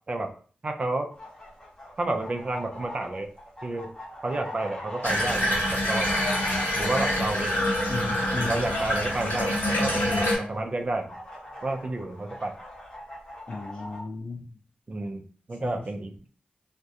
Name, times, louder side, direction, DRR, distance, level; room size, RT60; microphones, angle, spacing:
voice 1, 0.6-1.1 2.0-3.3 3.6-3.9 4.2-6.1 6.8-7.6 8.3-11.1 11.6-12.5 14.9-16.3, right 2 dB, 35° right, 3 dB, 0.4 m, -30 dB
sound 1, 1.1-14.0, left 1 dB, 20° left, 0.8 m, -42 dB
Water tap faucet / Bathtub (filling or washing), 5.0-10.4, left 1 dB, 85° left, 0.9 m, -26 dB
voice 2, 7.9-8.7 13.5-14.5 15.6-15.8, left 3 dB, 40° left, -2 dB, 0.5 m, -34 dB
2.3 x 2.1 x 2.7 m, 0.42 s
cardioid pair, 80°, 3 cm